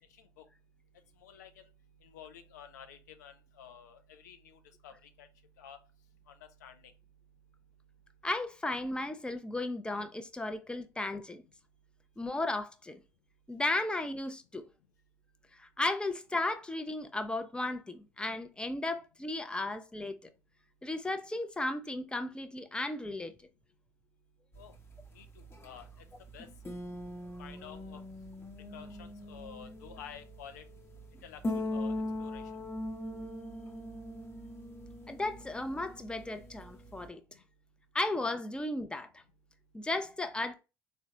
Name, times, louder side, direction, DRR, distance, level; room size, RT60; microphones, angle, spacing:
voice 1, 1.2-1.6 2.0-5.3 5.6-5.8 6.3-6.9 24.6-24.7 25.1-26.0 26.3-26.5 27.4-28.0 28.7-30.6 31.2-32.5, left 8 dB, 85° left, 0.4 m, -51 dB
voice 2, 8.2-11.4 12.2-13.0 13.5-14.6 15.6-20.2 20.8-23.3 35.1-37.2 37.9-39.2 39.7-40.5, left 2 dB, 10° left, 0.5 m, -35 dB
sound 1, 24.5-37.1, left 1 dB, 25° left, 0.9 m, -41 dB
3.8 x 2.2 x 2.8 m
hypercardioid pair, 60°, 9 cm